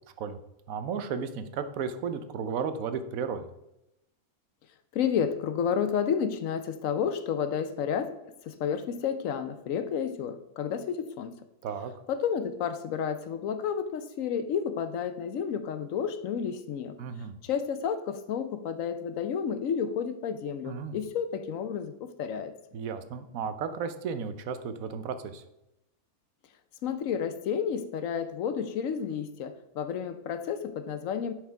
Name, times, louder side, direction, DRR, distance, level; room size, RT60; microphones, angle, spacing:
voice 1, 0.7-3.5 11.6-11.9 17.0-17.3 20.6-21.0 22.7-25.4, right 6 dB, 75° right, 10 dB, 1.1 m, -34 dB
voice 2, 4.9-8.1 8.5-11.3 12.1-17.0 17.4-21.9 22.2-22.5 26.8-31.3, left 7 dB, 70° left, 10 dB, 1.0 m, -31 dB
9.9 x 4.7 x 3.4 m, 0.88 s
omnidirectional pair, 1.5 m